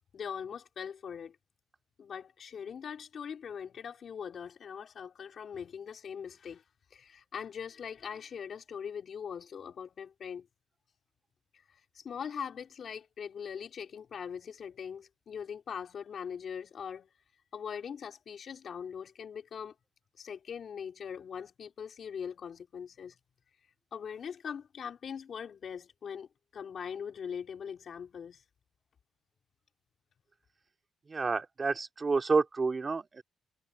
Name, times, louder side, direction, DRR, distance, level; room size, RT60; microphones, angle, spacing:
voice 1, 0.1-1.4 2.0-6.6 6.9-10.5 11.5-11.6 11.9-17.1 17.5-19.7 20.2-23.2 23.9-28.4, left 7 dB, 55° left, 3.1 m, -41 dB
voice 2, 31.1-33.2, right 4 dB, 30° right, 2.4 m, -29 dB
cardioid pair, 90°, 0 cm